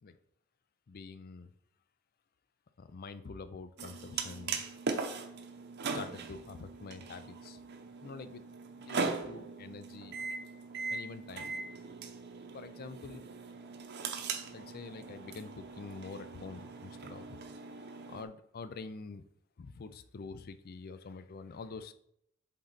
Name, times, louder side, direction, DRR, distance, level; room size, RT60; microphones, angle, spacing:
voice 1, 0.9-1.5 2.8-4.7 5.9-7.6 8.0-8.4 8.9-10.2 10.9-11.6 12.5-13.2 14.5-17.4 18.1-19.2 19.6-21.9, left 4 dB, 45° left, 12 dB, 0.4 m, -46 dB
sound 1, 3.8-18.2, right 4 dB, 55° right, 0.7 m, -40 dB
7.5 x 3.8 x 4.0 m, 0.72 s
head